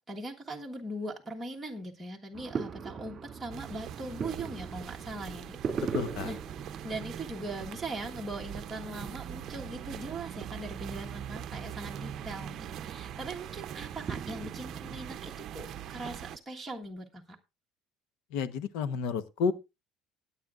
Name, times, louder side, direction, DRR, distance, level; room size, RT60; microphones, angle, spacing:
voice 1, 0.0-17.4, right 2 dB, 5° right, 1.5 m, -40 dB
sound 1, 2.3-15.1, right 6 dB, 30° right, 2.2 m, -42 dB
sound 2, 3.5-16.4, right 10 dB, 45° right, 0.7 m, -42 dB
voice 2, 5.9-6.3 18.3-19.5, left 6 dB, 80° left, 1.1 m, -31 dB
18.0 x 8.9 x 2.5 m
cardioid pair, 145°, 0 cm